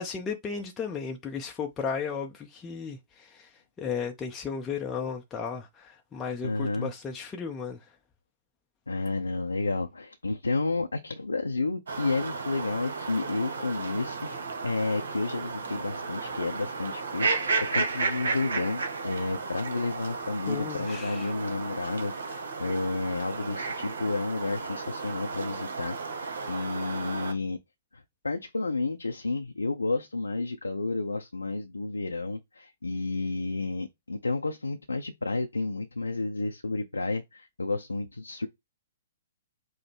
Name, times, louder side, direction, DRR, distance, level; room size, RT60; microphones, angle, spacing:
voice 1, 0.0-3.5 3.8-7.8 20.5-21.3, left 6 dB, 15° left, 0.6 m, -34 dB
voice 2, 6.4-6.9 8.9-14.3 14.6-27.6 28.2-38.5, left 3 dB, 75° left, 0.6 m, -31 dB
sound 1, 11.9-27.3, right 4 dB, 60° right, 1.1 m, -33 dB
4.9 x 2.1 x 4.5 m
figure-of-eight pair, 120°, 0 cm